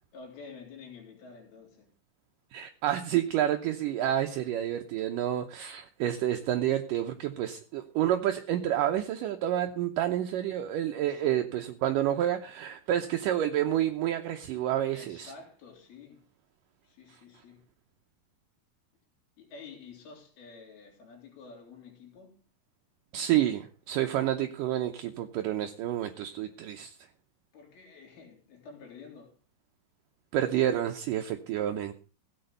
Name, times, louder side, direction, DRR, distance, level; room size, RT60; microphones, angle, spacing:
voice 1, 0.1-1.9 11.0-11.5 14.9-16.2 16.8-17.6 19.4-22.5 27.5-29.4, left 5 dB, 85° left, 5.1 m, -49 dB
voice 2, 2.5-15.3 23.1-27.0 30.3-31.9, right 12 dB, 75° right, 2.3 m, -29 dB
16.0 x 8.0 x 6.6 m
omnidirectional pair, 4.3 m